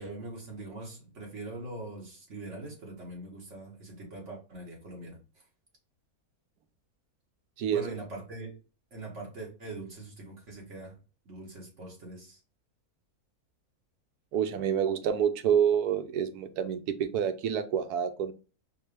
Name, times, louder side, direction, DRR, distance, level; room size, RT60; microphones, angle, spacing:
voice 1, 0.0-5.2 7.7-8.5 8.9-11.0 11.2-12.4, right 2 dB, 50° right, -1 dB, 1.6 m, -42 dB
voice 2, 14.3-18.3, right 8 dB, 85° right, 10 dB, 1.1 m, -28 dB
4.5 x 2.3 x 3.2 m, 0.34 s
omnidirectional pair, 1.6 m